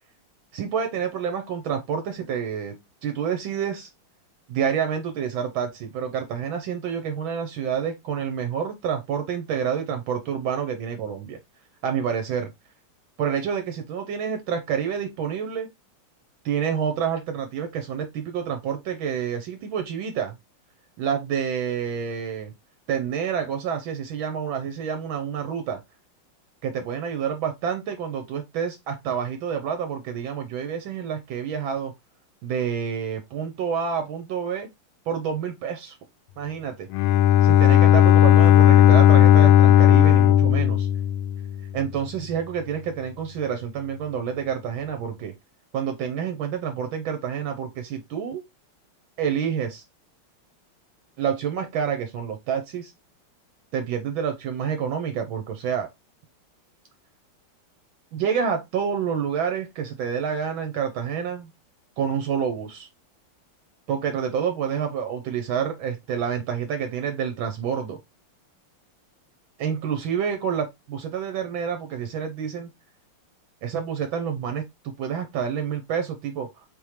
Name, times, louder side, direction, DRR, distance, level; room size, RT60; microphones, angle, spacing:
voice 1, 0.5-2.8 3.0-3.9 4.5-11.4 11.8-12.5 13.2-15.7 16.4-20.4 21.0-22.5 22.9-25.8 26.6-31.9 32.4-34.7 35.1-36.0 36.4-36.9 37.4-40.9 41.7-45.3 45.7-48.4 49.2-49.8 51.2-52.9 53.7-55.9 58.1-61.5 62.0-62.9 63.9-68.0 69.6-72.7 73.6-76.5, right 7 dB, 75° right, 1.4 m, -28 dB
Bowed string instrument, 36.9-41.7, left 10 dB, 80° left, 1.4 m, -15 dB
4.3 x 3.5 x 3.1 m
omnidirectional pair, 2.4 m